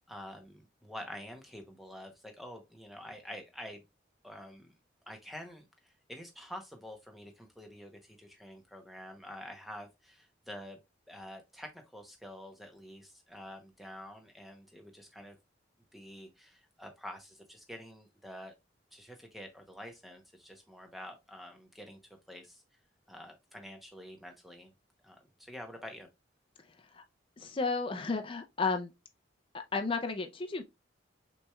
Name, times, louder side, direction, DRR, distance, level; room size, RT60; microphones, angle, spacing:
voice 1, 0.1-3.8 4.2-4.7 5.1-10.8 11.1-15.4 15.9-18.5 18.9-22.0 22.3-22.6 23.1-24.7 25.0-26.1, equal, ahead, 0.8 m, -47 dB
voice 2, 27.4-28.9 29.5-30.6, left 4 dB, 25° left, 0.4 m, -33 dB
6.0 x 3.1 x 2.3 m
head